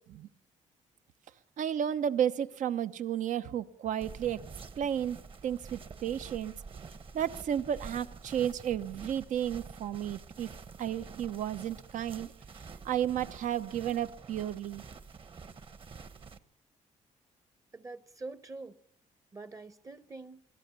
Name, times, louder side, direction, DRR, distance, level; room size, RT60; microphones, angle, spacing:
voice 1, 1.6-4.4 4.8-5.2 5.4-6.5 7.1-10.5 10.8-12.3 12.8-14.8, right 10 dB, 75° right, 1.0 m, -32 dB
sound 1, 4.0-16.4, right 5 dB, 40° right, 1.3 m, -48 dB
voice 2, 17.7-18.8 19.3-20.4, right 3 dB, 25° right, 0.9 m, -45 dB
23.0 x 16.5 x 8.3 m
cardioid pair, 110°, 13 cm